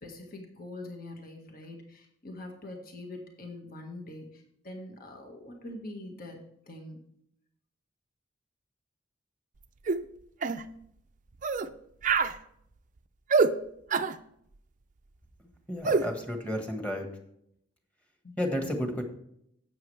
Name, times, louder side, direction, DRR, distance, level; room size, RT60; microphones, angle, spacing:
voice 1, 0.0-7.0 18.2-18.4, left 1 dB, 50° left, 2 dB, 1.7 m, -44 dB
sound 1, 9.9-10.0 10.4-10.6 11.4-11.7 12.0-12.4 13.3-13.5 13.9-14.2 15.8-16.1, right 4 dB, 40° right, 0.5 m, -25 dB
voice 2, 15.7-17.1 18.4-19.0, equal, 10° left, 3 dB, 1.5 m, -31 dB
12.0 x 8.3 x 3.3 m, 0.73 s
head